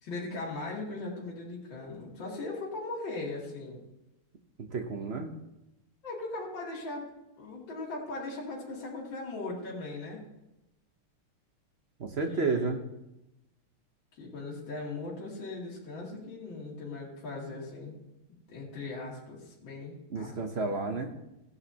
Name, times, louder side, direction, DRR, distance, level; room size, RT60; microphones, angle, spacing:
voice 1, 0.0-3.8 6.0-7.1 7.4-10.2 12.3-12.7 14.2-18.0 18.5-20.3, left 3 dB, 60° left, -5 dB, 3.1 m, -39 dB
voice 2, 4.6-5.3 12.0-12.8 20.1-21.1, right 3 dB, 50° right, 4 dB, 0.7 m, -31 dB
16.5 x 10.5 x 2.9 m, 0.90 s
omnidirectional pair, 2.3 m